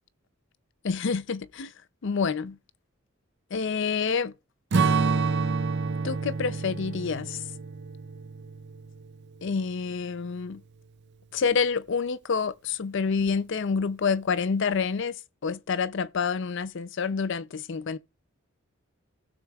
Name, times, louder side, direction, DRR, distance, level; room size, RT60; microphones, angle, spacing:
voice 1, 0.8-1.7 2.0-2.6 3.5-4.3 6.0-7.4 9.4-10.6 11.3-15.2 15.4-18.0, left 5 dB, 60° left, 0.5 m, -28 dB
Strum, 4.7-9.4, right 4 dB, 55° right, 0.5 m, -28 dB
16.5 x 6.3 x 2.4 m
head